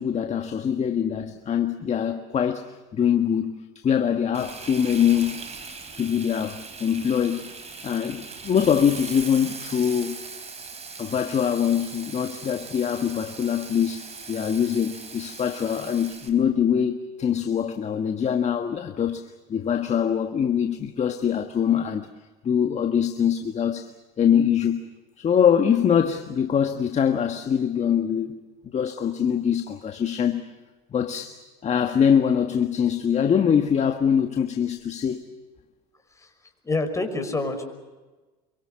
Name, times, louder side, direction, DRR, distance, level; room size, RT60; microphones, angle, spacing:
voice 1, 0.0-5.4 6.0-7.5 7.8-10.2 11.0-22.1 22.4-23.9 24.2-24.8 25.2-28.4 28.7-30.4 30.9-35.2, left 8 dB, 35° left, 1.6 m, -23 dB
Frying (food), 4.3-16.3, right 4 dB, 35° right, 4.8 m, -40 dB
voice 2, 36.6-37.6, left 2 dB, 15° left, 5.6 m, -27 dB
27.5 x 24.0 x 6.5 m
supercardioid pair, 90°, 20 cm